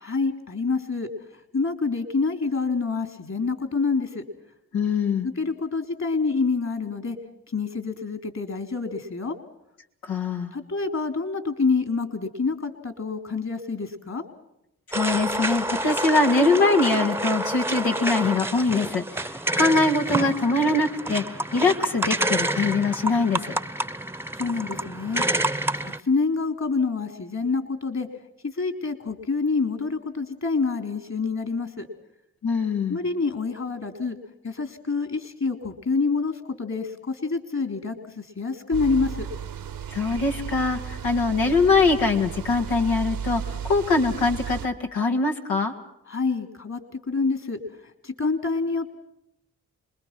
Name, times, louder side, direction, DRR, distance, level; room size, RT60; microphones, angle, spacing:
voice 1, 0.0-4.2 5.2-7.2 7.5-9.4 10.5-14.2 24.4-25.5 25.8-28.1 28.4-31.9 32.9-34.2 34.4-39.3 46.1-48.9, left 4 dB, 50° left, 7 dB, 3.5 m, -27 dB
voice 2, 4.7-5.3 10.0-10.5 14.9-21.2 21.5-23.6 32.4-33.0 39.9-45.7, left 3 dB, 80° left, 2 dB, 2.2 m, -23 dB
sound 1, 14.9-26.0, right 1 dB, 5° right, 1.0 m, -28 dB
sound 2, 38.7-44.7, right 7 dB, 70° right, 1.2 m, -34 dB
27.0 x 21.5 x 6.0 m, 0.83 s
supercardioid pair, 40°, 35 cm